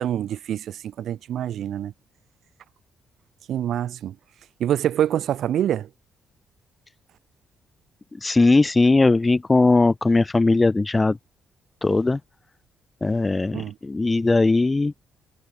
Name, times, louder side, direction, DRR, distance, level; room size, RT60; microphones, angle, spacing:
voice 1, 0.0-1.9 3.5-4.2 4.6-5.9 13.5-13.7, right 10 dB, 70° right, 1.1 m, -25 dB
voice 2, 8.2-11.2 11.8-12.2 13.0-14.9, left 3 dB, 20° left, 0.7 m, -19 dB
cardioid pair, 90°, 0 cm